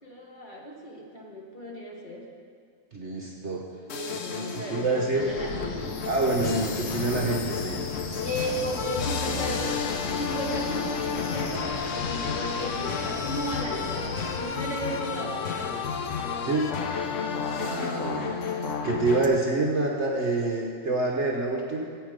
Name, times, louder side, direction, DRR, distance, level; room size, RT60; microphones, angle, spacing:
voice 1, 0.0-2.3 3.9-6.0 8.2-9.8 10.2-15.9, equal, 30° left, -3 dB, 1.7 m, -35 dB
voice 2, 2.9-3.7 4.3-5.2 6.0-7.8 16.4-16.8 17.5-18.4 18.8-21.8, right 3 dB, 45° right, -1 dB, 1.2 m, -27 dB
sound 1, 3.9-19.3, left 6 dB, 55° left, 1.0 m, -32 dB
Wind, 5.2-14.4, left 3 dB, 75° left, 1.7 m, -36 dB
15.5 x 8.3 x 5.1 m, 2.2 s
omnidirectional pair, 1.9 m